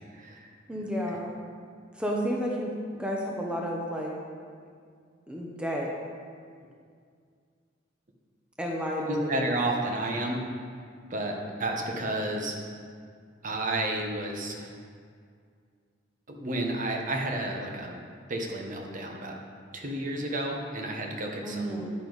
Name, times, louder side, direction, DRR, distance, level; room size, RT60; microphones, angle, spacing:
voice 1, 0.1-0.5 9.1-10.4 11.1-12.6 13.4-14.7 16.3-18.0 18.3-19.4 19.7-21.8, right 1 dB, 40° right, 1 dB, 1.1 m, -31 dB
voice 2, 0.7-1.3 1.9-4.1 5.3-5.9 8.6-9.5 21.4-21.9, equal, 5° right, -2 dB, 0.9 m, -31 dB
9.7 x 9.1 x 4.0 m, 2.1 s
head